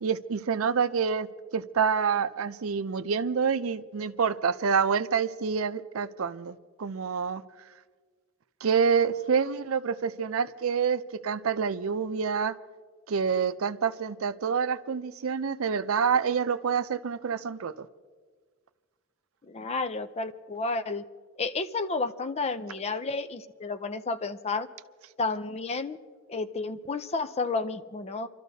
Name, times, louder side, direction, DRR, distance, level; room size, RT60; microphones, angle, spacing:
voice 1, 0.0-7.4 8.6-12.5 13.1-17.9, right 6 dB, 80° right, 12 dB, 0.5 m, -27 dB
voice 2, 19.5-21.0 21.4-24.7 25.2-26.0 26.3-28.3, left 3 dB, 30° left, 10 dB, 0.5 m, -31 dB
29.5 x 13.0 x 2.7 m, 1.5 s
head